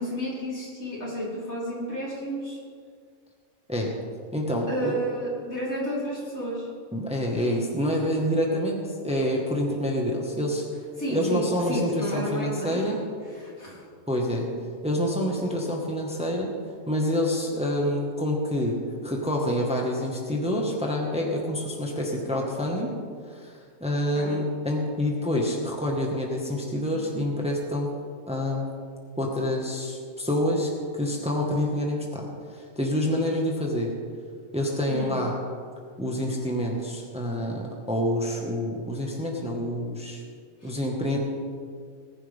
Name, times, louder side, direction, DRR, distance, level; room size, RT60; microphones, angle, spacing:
voice 1, 0.0-2.6 4.7-6.7 11.0-12.9 13.3-13.8 24.1-24.4 34.9-35.2 40.6-40.7, equal, 80° left, -8 dB, 5.0 m, -31 dB
voice 2, 4.3-5.0 6.9-10.6 11.1-13.0 14.1-14.5 14.8-16.5 16.9-22.9 23.3-27.9 28.3-28.7 29.2-32.2 32.5-33.9 34.5-35.4 36.0-40.2 40.6-41.2, left 1 dB, 5° right, -1 dB, 1.6 m, -27 dB
19.5 x 11.0 x 3.7 m, 2.1 s
omnidirectional pair, 1.4 m